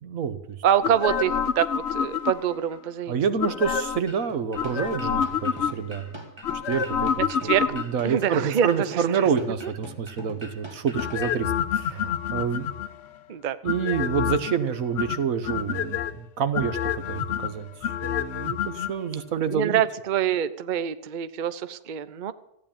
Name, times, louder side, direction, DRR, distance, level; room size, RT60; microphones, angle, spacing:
voice 1, 0.0-0.6 3.1-6.3 6.7-12.7 13.6-19.8, right 6 dB, 85° right, 11 dB, 1.5 m, -28 dB
voice 2, 0.6-3.2 7.3-7.6 8.0-8.7 13.3-13.6 19.5-22.3, right 9 dB, 45° right, 14 dB, 0.7 m, -25 dB
sound 1, 0.8-2.6 3.4-4.1 4.5-6.0 6.4-8.1 10.9-13.1 13.7-14.6 15.0-16.1 16.5-18.9 19.2-19.3, left 8 dB, 60° left, 0.9 m, -28 dB
sound 2, 4.1-11.4, right 1 dB, 20° right, 2.0 m, -43 dB
14.5 x 9.5 x 8.8 m, 0.85 s
omnidirectional pair, 1.4 m